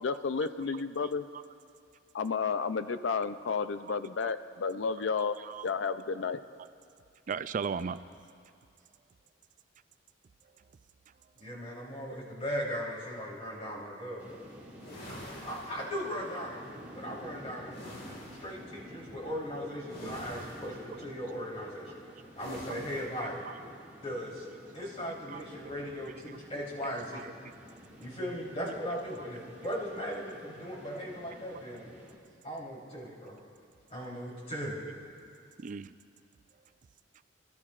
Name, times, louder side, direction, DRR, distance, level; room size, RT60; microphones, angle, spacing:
voice 1, 0.0-1.2 2.1-5.4 5.6-6.4, left 5 dB, 75° left, 11 dB, 0.5 m, -31 dB
voice 2, 5.2-5.7 7.3-8.0 20.0-20.1 23.5-23.6 25.3-25.4 26.3-27.5 28.6-28.7 35.6-35.9, right 6 dB, 40° right, 14 dB, 0.3 m, -38 dB
voice 3, 11.4-14.4 15.1-17.8 18.3-22.0 22.4-23.5 24.0-24.5 24.7-27.2 28.0-31.9 32.4-33.4 33.9-34.8, equal, 35° left, -6 dB, 3.7 m, -38 dB
sound 1, 14.2-32.2, equal, 10° right, 2.0 m, -51 dB
sound 2, 14.8-16.4 17.7-18.6 19.9-21.0 22.4-23.3, equal, 55° left, 2.0 m, -46 dB
26.5 x 13.0 x 2.5 m, 2.4 s
head